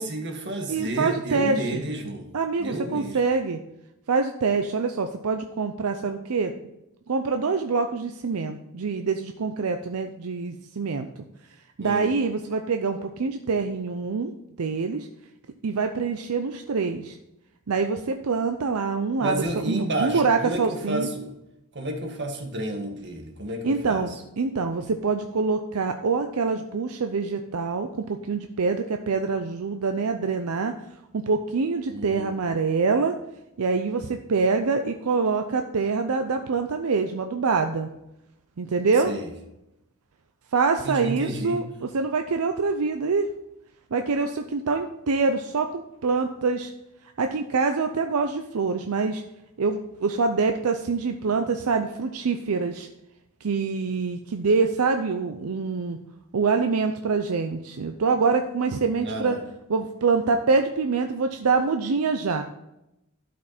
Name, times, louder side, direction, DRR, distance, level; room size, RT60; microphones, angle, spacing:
voice 1, 0.0-2.3 2.6-3.2 11.8-12.1 19.2-21.3 21.7-24.0 31.9-32.3 39.0-39.3 40.8-41.6 59.0-59.4, right 1 dB, 55° right, 4 dB, 1.5 m, -31 dB
voice 2, 0.7-1.8 2.3-3.6 4.1-6.5 7.1-11.1 11.8-14.3 14.6-15.1 15.6-17.2 17.7-21.1 23.6-30.7 31.1-33.1 33.6-37.9 38.6-39.1 40.5-43.3 43.9-46.7 47.2-49.2 49.6-52.9 53.4-56.0 56.3-59.4 59.7-62.4, right 4 dB, 80° right, 6 dB, 0.6 m, -25 dB
12.0 x 5.2 x 4.2 m, 0.87 s
head